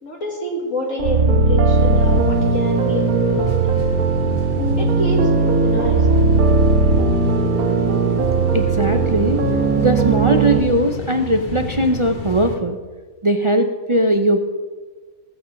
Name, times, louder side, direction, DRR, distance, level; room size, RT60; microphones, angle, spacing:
voice 1, 0.0-4.0 4.7-6.1, left 2 dB, 60° left, -1 dB, 2.2 m, -27 dB
sound 1, 1.0-10.6, right 4 dB, 70° right, 1.5 m, -18 dB
sound 2, 1.7-12.6, left 3 dB, 35° left, 1.5 m, -31 dB
voice 2, 8.5-9.4 9.8-12.8 13.2-14.5, right 1 dB, 40° right, 6 dB, 0.4 m, -19 dB
18.0 x 8.1 x 5.1 m, 1.4 s
omnidirectional pair, 1.5 m